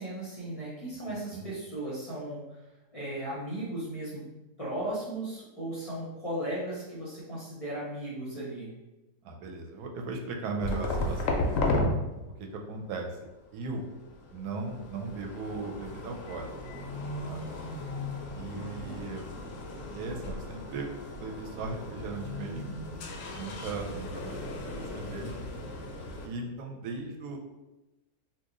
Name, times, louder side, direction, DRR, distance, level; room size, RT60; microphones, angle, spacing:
voice 1, 0.0-2.4 2.9-4.2 4.6-8.7 18.5-19.0, right 1 dB, 30° left, -8 dB, 0.7 m, -36 dB
voice 2, 9.2-11.6 12.4-13.1 13.5-13.9 14.3-16.5 17.2-17.4 18.4-19.3 19.9-22.8 23.3-25.4 26.2-27.4, right 3 dB, 85° right, 2 dB, 1.1 m, -38 dB
sound 1, 10.6-11.9 13.5-26.3, left 2 dB, 70° left, 0.8 m, -35 dB
2.9 x 2.3 x 3.7 m, 1.0 s
omnidirectional pair, 1.6 m